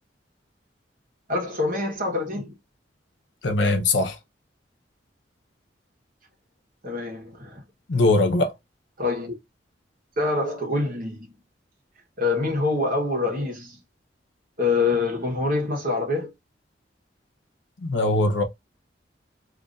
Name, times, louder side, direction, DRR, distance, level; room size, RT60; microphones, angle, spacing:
voice 1, 1.3-2.5 6.8-7.6 9.0-9.3 10.2-11.4 12.2-13.8 14.6-16.3, left 3 dB, 50° right, 1.3 m, -25 dB
voice 2, 3.4-4.2 7.9-8.5 17.8-18.4, left 2 dB, 85° left, 0.8 m, -21 dB
2.8 x 2.5 x 3.9 m
head